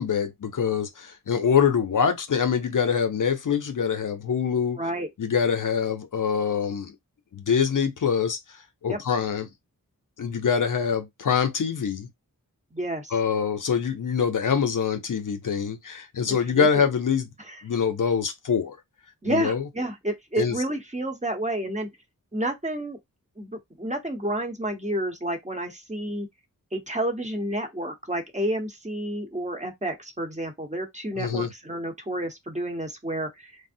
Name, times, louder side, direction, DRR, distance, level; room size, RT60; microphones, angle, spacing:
voice 1, 0.0-4.8 5.2-6.9 7.3-8.4 8.8-9.5 10.2-12.1 13.1-17.3 17.6-18.8 19.3-19.6 20.4-20.5 31.2-31.5, left 7 dB, 60° left, 0.6 m, -24 dB
voice 2, 4.8-5.1 8.9-9.0 12.7-13.1 16.3-16.9 17.4-17.6 19.2-21.9 22.3-23.0 23.4-26.3 26.7-33.5, right 1 dB, 20° right, 0.9 m, -30 dB
3.3 x 2.0 x 2.6 m
wide cardioid pair, 70°, 35 cm